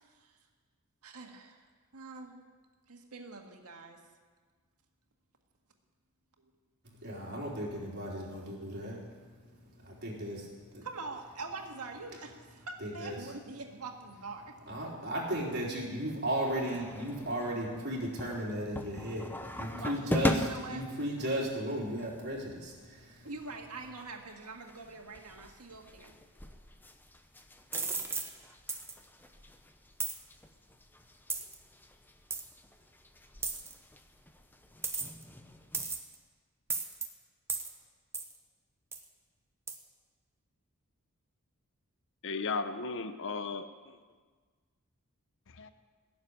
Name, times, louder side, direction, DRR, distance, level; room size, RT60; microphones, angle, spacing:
voice 1, 0.1-0.4 1.0-2.4 2.9-4.0 6.4-6.5 10.8-14.5 19.7-20.8 23.2-26.2, right 3 dB, 90° right, 3 dB, 1.9 m, -44 dB
voice 2, 6.9-10.8 12.8-13.2 14.7-23.3, right 1 dB, 50° right, -4 dB, 3.8 m, -36 dB
sound 1, 16.4-36.0, left 1 dB, 10° left, 0.8 m, -41 dB
sound 2, 27.7-28.3 28.7-28.9 30.0-30.2 31.3-31.5 32.3-32.4 33.4-33.7 34.8-35.2 35.7-36.1 36.7-37.1 37.5-37.7 38.1-38.3 38.9-39.0 39.7-39.8, right 4 dB, 10° right, 1.1 m, -34 dB
voice 3, 42.2-44.0 45.5-45.7, left 4 dB, 60° left, 10 dB, 0.7 m, -36 dB
17.0 x 7.3 x 9.7 m, 1.5 s
head